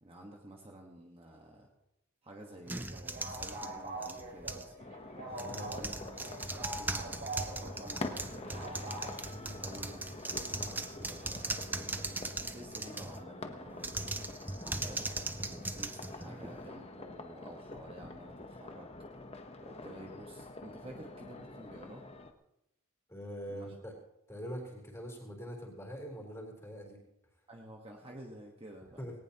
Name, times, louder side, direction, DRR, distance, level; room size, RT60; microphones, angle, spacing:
voice 1, 0.0-1.7 2.2-4.7 5.8-5.9 6.6-7.2 7.6-14.3 14.8-15.1 15.3-18.9 19.6-22.1 23.5-23.7 27.5-29.0, right 1 dB, 25° right, 0 dB, 1.3 m, -51 dB
sound 1, 2.7-4.7 5.3-13.2 13.8-16.7, right 2 dB, 10° right, 0.5 m, -39 dB
sound 2, 2.7-9.1, right 2 dB, 40° right, 3.6 m, -44 dB
sound 3, 4.8-22.3, left 2 dB, 30° left, 0.9 m, -46 dB
voice 2, 5.3-5.7 9.3-9.6 23.1-23.9 24.3-27.0 29.0-29.2, equal, 10° left, 0 dB, 3.7 m, -43 dB
18.5 x 18.5 x 2.9 m, 0.85 s
head